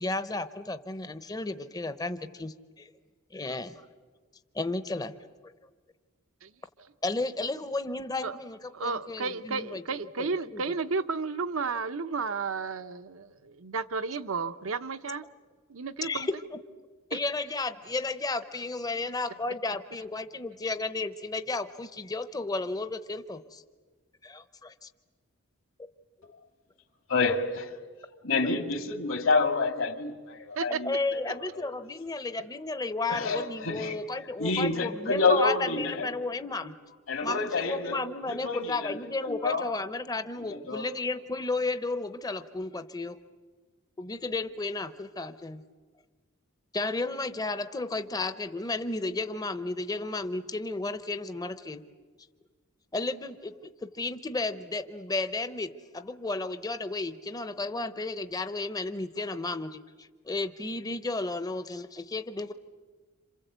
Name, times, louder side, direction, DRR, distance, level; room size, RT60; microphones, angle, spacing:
voice 1, 0.0-2.9 3.3-3.8 4.5-5.1 7.0-9.8 10.2-10.6 16.0-16.6 17.1-23.6 24.2-24.9 26.2-26.3 30.8-36.7 37.2-43.2 44.0-45.6 46.7-51.8 52.9-53.5 53.8-62.5, left 3 dB, 20° left, 0.7 m, -33 dB
voice 2, 8.7-15.2 15.7-16.3 17.1-17.2 30.6-30.8, right 4 dB, 75° right, 0.9 m, -32 dB
voice 3, 27.1-27.7 28.2-31.7 33.1-34.0 34.4-36.1 37.1-39.7 40.5-40.9, left 3 dB, 70° left, 2.2 m, -28 dB
27.5 x 27.0 x 8.1 m
head